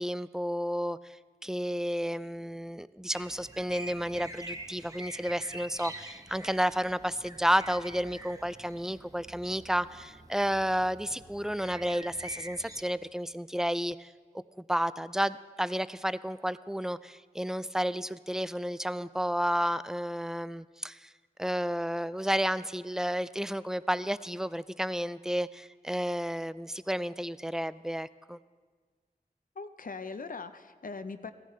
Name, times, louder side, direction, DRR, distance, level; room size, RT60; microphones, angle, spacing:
voice 1, 0.0-14.1 14.6-21.1 21.4-28.4, equal, 5° right, 16 dB, 0.3 m, -31 dB
sound 1, 3.1-12.8, right 1 dB, 20° right, 0.9 m, -46 dB
voice 2, 29.6-31.3, left 4 dB, 65° left, 10 dB, 0.6 m, -40 dB
16.5 x 14.0 x 3.2 m, 1.5 s
wide cardioid pair, 70°, 15 cm